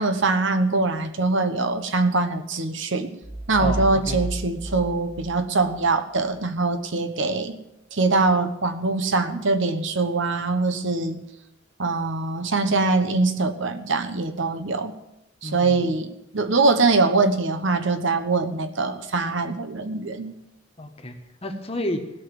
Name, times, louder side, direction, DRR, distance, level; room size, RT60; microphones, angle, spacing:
voice 1, 0.0-3.2 3.5-7.6 7.9-11.2 11.8-14.9 15.4-20.4, right 3 dB, 65° right, 9 dB, 1.1 m, -23 dB
sound 1, 3.2-5.9, right 1 dB, 5° right, 1.4 m, -32 dB
voice 2, 3.6-4.2 15.4-15.9 20.8-22.0, left 1 dB, 30° left, 5 dB, 1.5 m, -31 dB
16.5 x 6.1 x 9.4 m, 0.86 s
head